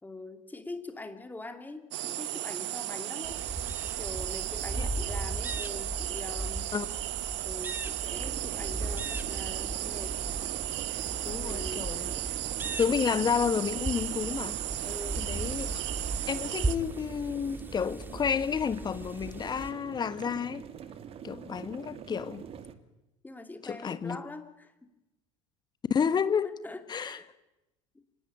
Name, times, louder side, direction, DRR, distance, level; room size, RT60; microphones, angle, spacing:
voice 1, 0.0-3.4 4.0-6.7 7.4-10.2 11.3-11.9 14.8-15.3 23.2-24.9 26.4-27.3, left 2 dB, 10° left, 2.5 m, -43 dB
sound 1, 1.9-16.8, right 15 dB, 65° right, 1.1 m, -35 dB
sound 2, 3.2-19.7, right 2 dB, 10° right, 2.2 m, -38 dB
sound 3, 8.1-22.7, right 8 dB, 40° right, 2.2 m, -45 dB
voice 2, 11.2-12.1 12.8-14.6 15.2-15.7 16.3-20.7 21.2-22.4 23.6-24.2 25.9-26.6 26.9-27.2, left 7 dB, 25° left, 1.3 m, -30 dB
26.0 x 19.0 x 9.0 m
figure-of-eight pair, 65°, 16 cm